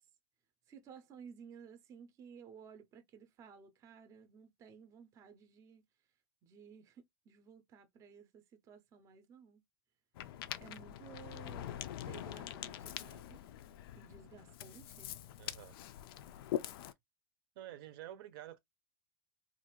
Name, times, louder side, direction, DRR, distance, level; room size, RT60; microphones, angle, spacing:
voice 1, 0.7-5.8 6.4-9.6 10.6-13.4 13.9-15.2, right 7 dB, 25° right, 0.5 m, -56 dB
Ocean, 10.2-16.9, left 12 dB, 85° left, 0.4 m, -44 dB
voice 2, 12.0-12.3 15.4-15.8 17.6-18.6, right 13 dB, 70° right, 0.6 m, -50 dB
2.5 x 2.3 x 2.9 m
supercardioid pair, 155°, 12 cm